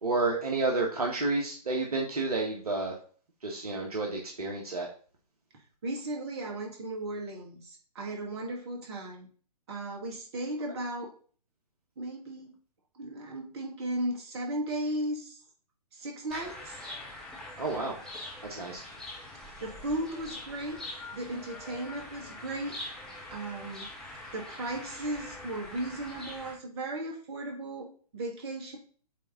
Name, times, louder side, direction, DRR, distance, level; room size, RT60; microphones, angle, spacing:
voice 1, 0.0-2.9 3.4-4.9 17.6-17.9 18.4-18.8, right 3 dB, 65° right, -1 dB, 1.6 m, -30 dB
voice 2, 5.8-9.3 9.7-11.1 12.0-12.6 12.9-15.4 15.9-16.8 19.6-20.8 21.1-22.7 23.3-23.9 24.3-27.9 28.1-28.8, right 1 dB, 40° right, -1 dB, 2.4 m, -36 dB
sound 1, 16.3-26.5, left 1 dB, ahead, 1.5 m, -44 dB
8.3 x 3.7 x 4.1 m, 0.43 s
figure-of-eight pair, 125°, 20 cm